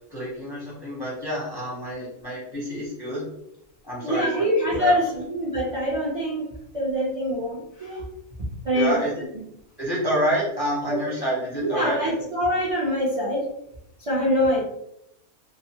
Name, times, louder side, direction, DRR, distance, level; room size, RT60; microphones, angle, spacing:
voice 1, 0.1-3.3 3.8-4.5 4.7-5.2 8.7-9.2 9.8-12.3, right 1 dB, 25° left, -5 dB, 0.5 m, -28 dB
voice 2, 4.0-6.5 6.7-8.0 8.4-9.0 10.9-11.0 11.5-13.5 14.0-14.6, equal, 55° right, -6 dB, 0.4 m, -24 dB
2.5 x 2.4 x 2.8 m, 0.77 s
omnidirectional pair, 1.5 m